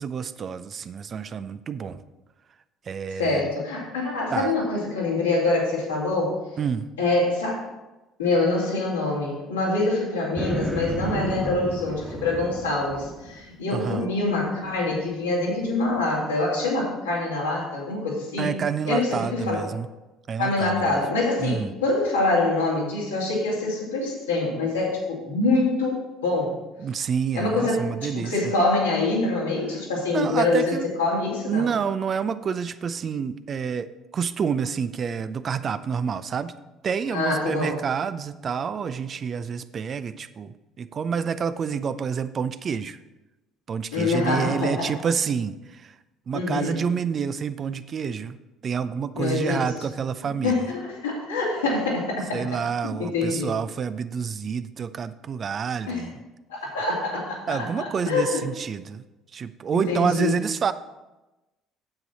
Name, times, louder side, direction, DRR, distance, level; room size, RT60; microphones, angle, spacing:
voice 1, 0.0-2.0 2.9-3.5 4.3-4.5 6.6-6.9 13.7-14.1 18.4-19.9 20.3-21.0 21.4-21.7 26.8-28.5 29.7-29.8 30.1-30.9 31.5-36.5 36.8-43.0 43.7-46.0 46.3-48.4 48.6-50.7 52.3-56.1 57.5-59.0 59.3-60.7, right 6 dB, 40° right, 13 dB, 0.5 m, -28 dB
voice 2, 3.2-6.3 7.0-7.6 8.2-18.5 18.9-19.6 20.4-26.6 27.3-27.9 28.1-31.6 37.1-37.8 43.9-44.9 46.3-46.8 49.1-49.6 50.4-52.4 52.8-53.5 55.9-56.0 56.5-58.4 59.9-60.3, left 2 dB, 85° left, -5 dB, 2.8 m, -25 dB
sound 1, 10.4-13.4, right 2 dB, 5° right, 1.4 m, -32 dB
8.9 x 7.8 x 4.1 m, 1.0 s
figure-of-eight pair, 55°, 0 cm